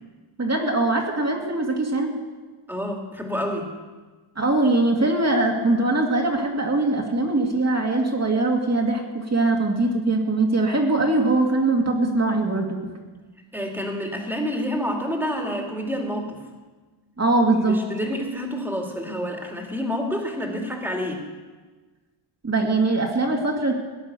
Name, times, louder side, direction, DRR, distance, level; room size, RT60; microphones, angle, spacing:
voice 1, 0.4-2.1 4.4-12.8 17.2-17.8 22.4-23.7, right 2 dB, 30° right, 1 dB, 2.2 m, -22 dB
voice 2, 2.7-3.7 13.5-16.4 17.5-21.2, equal, 5° right, 1 dB, 2.4 m, -28 dB
18.0 x 11.0 x 6.8 m, 1.3 s
wide cardioid pair, 150°, 50 cm